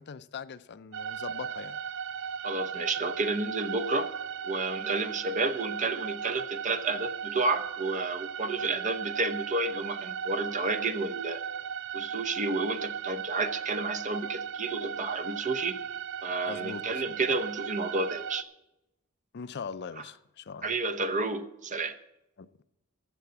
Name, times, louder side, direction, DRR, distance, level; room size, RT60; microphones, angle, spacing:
voice 1, 0.0-1.8 16.5-16.8 19.3-20.8 22.4-22.6, left 5 dB, 55° left, 0.5 m, -41 dB
sound 1, 0.9-18.4, right 8 dB, 60° right, 0.4 m, -37 dB
voice 2, 2.4-4.1 4.4-11.4 11.9-15.8 16.2-18.4 20.6-21.9, right 3 dB, 35° right, 0.9 m, -31 dB
14.0 x 7.0 x 8.0 m
head